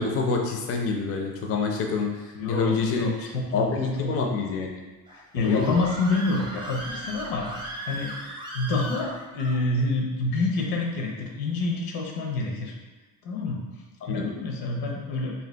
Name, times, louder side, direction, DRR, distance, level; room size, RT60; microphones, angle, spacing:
voice 1, 0.0-3.1 3.5-4.7 5.4-5.8 14.0-14.2, left 4 dB, 40° left, 1 dB, 0.4 m, -26 dB
voice 2, 2.3-4.3 5.1-8.1 8.5-12.7 13.2-13.6 14.0-15.3, left 3 dB, 85° left, 0 dB, 0.8 m, -28 dB
Screaming, 5.1-9.6, right 1 dB, 15° right, 0.5 m, -37 dB
2.7 x 2.2 x 3.3 m, 1.2 s
cardioid pair, 100°, 36 cm